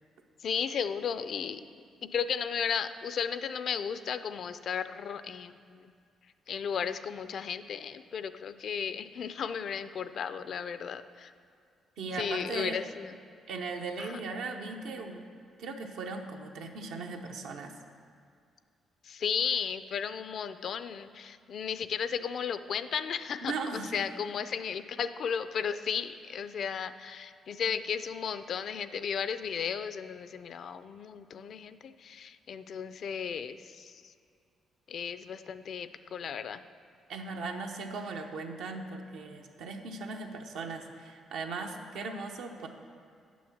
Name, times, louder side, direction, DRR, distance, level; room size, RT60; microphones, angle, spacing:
voice 1, 0.4-1.6 2.1-5.9 6.5-11.3 12.1-13.1 14.0-14.1 19.0-23.5 23.9-33.9 34.9-36.6, left 7 dB, 60° left, 12 dB, 0.4 m, -34 dB
voice 2, 12.0-12.8 13.5-15.3 15.6-17.8 23.4-24.0 37.1-42.7, right 3 dB, 85° right, 3 dB, 0.8 m, -38 dB
8.3 x 6.1 x 7.2 m, 2.3 s
cardioid pair, 90°, 0 cm